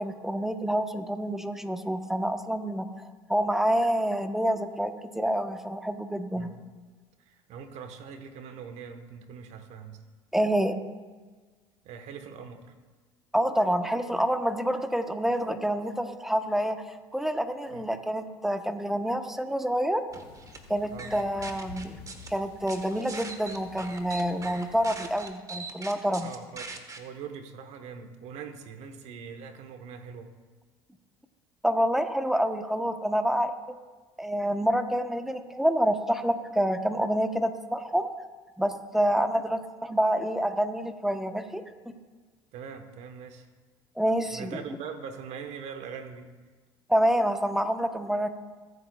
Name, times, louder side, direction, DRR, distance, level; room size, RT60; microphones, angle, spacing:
voice 1, 0.0-6.5 10.3-10.8 13.3-20.0 20.7-22.0 22.3-26.3 31.6-33.5 34.2-38.1 38.6-41.9 44.0-44.6 46.9-48.3, equal, 5° right, 7 dB, 1.1 m, -27 dB
voice 2, 7.2-10.0 11.8-12.7 17.7-17.8 20.9-21.1 26.2-30.3 42.5-43.5 44.3-46.3, right 6 dB, 65° right, 7 dB, 1.3 m, -42 dB
sound 1, 20.1-25.2, left 4 dB, 90° left, 2.0 m, -50 dB
sound 2, 20.1-20.6 21.0-22.3 22.7-27.0, right 3 dB, 25° right, 1.4 m, -41 dB
24.0 x 8.1 x 2.4 m, 1.4 s
hypercardioid pair, 70°, 12 cm